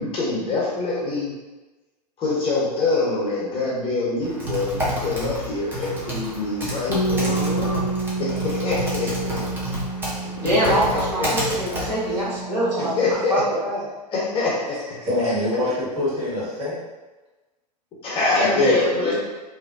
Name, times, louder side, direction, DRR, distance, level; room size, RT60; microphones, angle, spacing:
voice 1, 0.0-1.3 2.2-7.9 8.2-9.4 10.6-10.7 11.2-11.3 13.0-13.3 14.1-14.8 18.0-19.1, left 3 dB, 25° left, -6 dB, 0.7 m, -24 dB
Typing, 4.2-12.4, equal, 10° right, 0.6 m, -30 dB
Bass guitar, 6.9-13.1, right 3 dB, 70° left, 0.5 m, -29 dB
voice 2, 10.3-13.8 18.3-19.1, equal, 75° right, -8 dB, 1.1 m, -24 dB
voice 3, 15.0-16.8, left 1 dB, 30° right, -8 dB, 1.3 m, -25 dB
2.5 x 2.1 x 2.5 m, 1.1 s
figure-of-eight pair, 95°, 21 cm